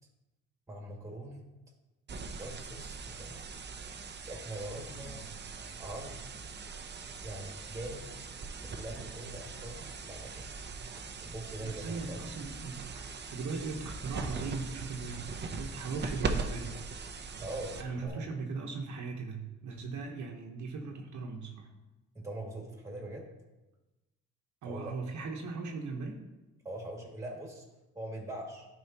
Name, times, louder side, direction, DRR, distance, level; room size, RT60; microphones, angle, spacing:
voice 1, 0.7-1.4 2.4-3.5 4.3-5.3 5.6-6.2 7.2-8.1 8.5-10.5 10.9-12.3 17.4-18.2 22.1-23.3 24.6-25.0 26.6-27.6 27.9-28.7, right 1 dB, 10° right, 0 dB, 2.2 m, -42 dB
sound 1, 2.1-18.1, right 4 dB, 35° right, 0.8 m, -40 dB
voice 2, 11.6-16.8 17.8-21.7 24.6-26.2, right 4 dB, 70° right, 1 dB, 1.2 m, -39 dB
11.5 x 5.0 x 3.0 m, 1.1 s
cardioid pair, 90°, 30 cm